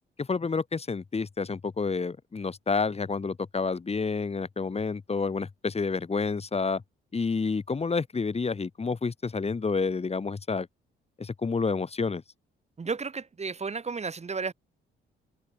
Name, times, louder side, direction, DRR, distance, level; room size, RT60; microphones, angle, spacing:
voice 1, 0.2-6.8 7.1-10.7 11.2-12.2, left 4 dB, 30° left, 6.4 m, -29 dB
voice 2, 12.8-14.5, right 4 dB, 35° right, 7.4 m, -33 dB
cardioid pair, 90°, 20 cm